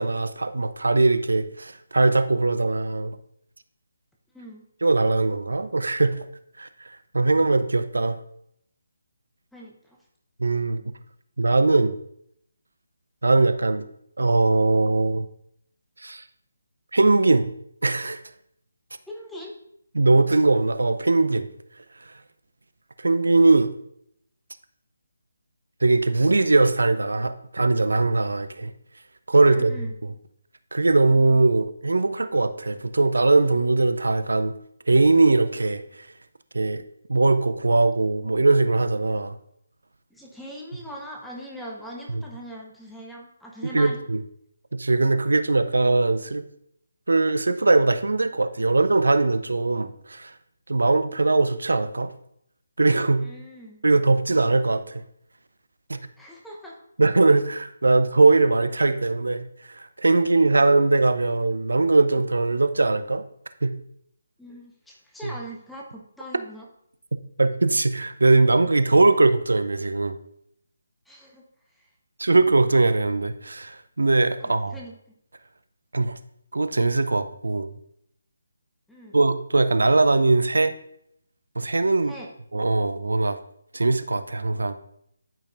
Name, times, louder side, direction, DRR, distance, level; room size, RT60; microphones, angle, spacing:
voice 1, 0.0-3.2 4.8-6.3 6.6-8.2 10.4-10.8 11.4-12.0 13.2-13.9 14.2-15.3 16.0-16.2 16.9-17.5 17.8-18.2 19.9-21.5 23.0-23.7 25.8-28.7 29.3-29.8 30.7-34.5 34.9-35.8 36.5-36.8 37.1-39.4 42.1-42.2 43.6-44.2 44.7-46.4 47.1-50.3 50.7-52.1 52.8-53.3 53.8-55.0 55.9-56.0 57.0-63.2 63.6-63.8 65.2-65.3 67.4-70.2 72.2-74.7 75.9-76.2 76.5-77.7 79.1-80.7 81.6-82.1 82.5-83.4 83.7-84.7, right 3 dB, 70° right, 11 dB, 0.5 m, -21 dB
voice 2, 9.5-10.0 19.1-19.5 29.5-29.9 40.1-44.0 53.2-53.8 56.2-56.8 64.4-66.7 71.1-71.4 71.7-71.9 74.4-74.9 78.9-79.2 82.0-82.3, equal, ahead, -3 dB, 0.8 m, -41 dB
12.0 x 5.2 x 2.5 m, 0.72 s
figure-of-eight pair, 150°, 0 cm